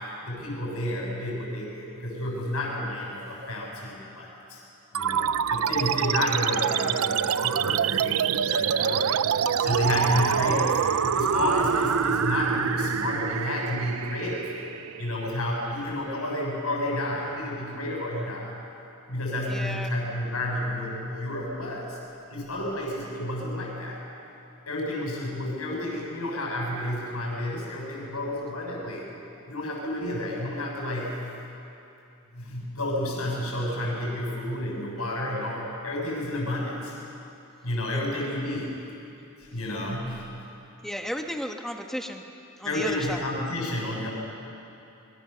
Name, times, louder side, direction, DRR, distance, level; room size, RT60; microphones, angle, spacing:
voice 1, 0.2-4.6 4.9-9.1 9.6-10.8 11.1-14.5 15.0-18.5 19.1-22.0 22.3-24.0 24.7-29.0 29.5-31.2 32.3-37.0 37.6-38.8 39.4-40.3 42.6-44.1, left 1 dB, 80° left, -2 dB, 6.8 m, -30 dB
sound 1, 4.9-15.9, right 7 dB, 70° right, 0.5 m, -26 dB
voice 2, 19.5-19.9 37.9-38.0 40.8-42.2 42.6-43.2, equal, ahead, 3 dB, 1.3 m, -33 dB
27.0 x 22.5 x 6.9 m, 2.8 s
head